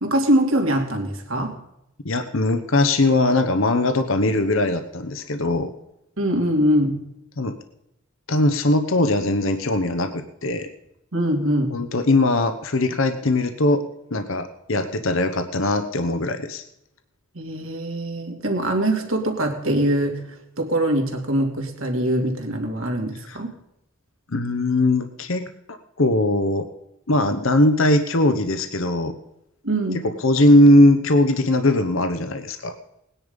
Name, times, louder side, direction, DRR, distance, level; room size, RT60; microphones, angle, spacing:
voice 1, 0.0-1.6 6.2-7.0 11.1-11.8 17.3-23.5 29.6-30.0, right 1 dB, 70° right, 3 dB, 2.6 m, -23 dB
voice 2, 2.0-5.7 7.4-7.5 8.3-10.7 11.7-13.8 14.1-16.6 23.3-23.4 24.3-25.5 26.0-26.7 27.1-29.1 30.0-32.7, left 1 dB, 65° left, 9 dB, 1.0 m, -20 dB
19.0 x 10.0 x 5.3 m, 0.83 s
head